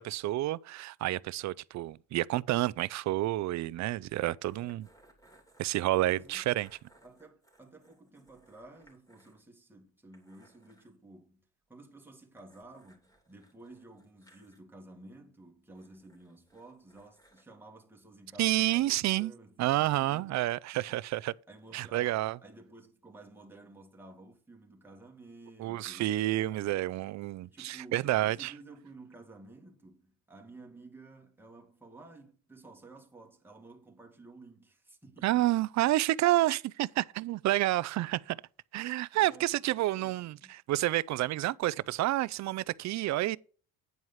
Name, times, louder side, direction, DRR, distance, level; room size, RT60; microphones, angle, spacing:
voice 1, 0.0-4.9 5.6-6.7 18.4-19.3 19.6-21.3 21.7-22.4 25.6-28.5 35.2-38.4 38.7-43.4, right 16 dB, 55° right, 0.4 m, -29 dB
sound 1, 4.4-9.4 9.7-9.8 10.1-10.9 12.4-14.6 15.7-17.5, right 1 dB, 10° left, 2.9 m, -64 dB
voice 2, 5.9-6.5 7.0-11.4 11.7-21.0 21.5-26.7 27.4-35.9 39.1-40.6, right 2 dB, 5° right, 2.0 m, -53 dB
9.4 x 4.7 x 5.6 m
cardioid pair, 120°, 34 cm